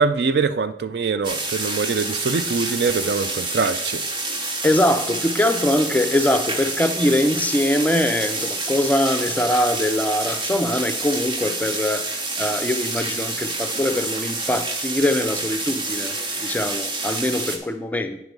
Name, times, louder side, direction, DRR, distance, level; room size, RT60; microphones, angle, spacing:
voice 1, 0.0-4.0, right 4 dB, 65° right, 0.4 m, -23 dB
sound 1, 1.2-17.6, right 2 dB, 25° right, 0.9 m, -28 dB
voice 2, 4.6-12.1 12.4-16.2 16.4-18.2, left 1 dB, 10° left, 0.4 m, -22 dB
8.1 x 4.7 x 5.3 m
head